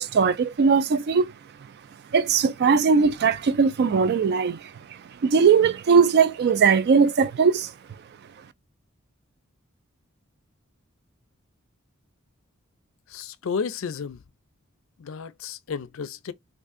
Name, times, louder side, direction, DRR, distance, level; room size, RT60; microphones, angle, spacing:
voice 1, 0.0-1.3 2.1-7.7, right 5 dB, 50° right, 0.3 m, -20 dB
voice 2, 13.1-14.2 15.0-16.3, left 6 dB, 65° left, 0.4 m, -32 dB
3.6 x 2.5 x 2.5 m
head